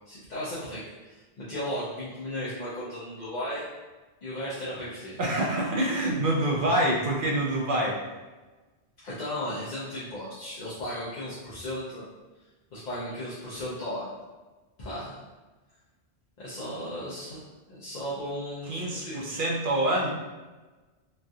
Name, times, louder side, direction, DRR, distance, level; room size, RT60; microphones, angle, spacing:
voice 1, 0.1-3.7 4.2-5.2 9.0-12.1 12.7-14.1 14.8-15.1 16.4-17.4 17.7-19.4, equal, 50° left, -10 dB, 0.7 m, -35 dB
voice 2, 5.2-8.0 18.7-20.1, right 1 dB, 60° right, -2 dB, 0.6 m, -26 dB
3.1 x 2.4 x 2.6 m, 1.2 s
omnidirectional pair, 1.1 m